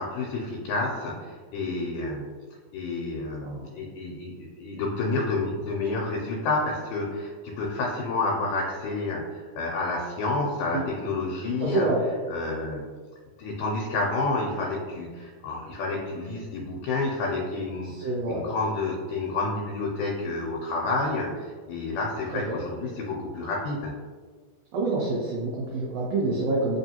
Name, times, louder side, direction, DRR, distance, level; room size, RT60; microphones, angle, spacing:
voice 1, 0.0-2.2 2.7-11.9 12.3-12.8 13.4-23.9, left 3 dB, 90° left, -2 dB, 2.1 m, -29 dB
voice 2, 11.6-12.0 17.9-18.4 22.5-22.6 24.7-26.8, right 2 dB, 80° right, -3 dB, 1.5 m, -27 dB
4.4 x 3.0 x 2.7 m, 1.5 s
omnidirectional pair, 3.5 m